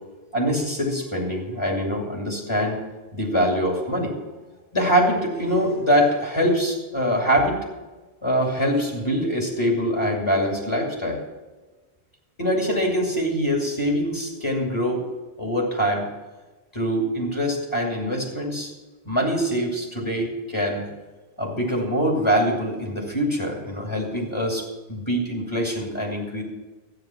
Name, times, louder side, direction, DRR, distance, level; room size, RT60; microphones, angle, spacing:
voice 1, 0.3-2.8 3.1-4.1 4.7-7.6 8.2-11.2 12.4-15.0 15.4-16.1 16.7-18.7 19.0-20.9 21.4-24.6 24.9-26.4, equal, 25° left, -1 dB, 2.7 m, -24 dB
13.0 x 9.5 x 6.0 m, 1.2 s
omnidirectional pair, 1.1 m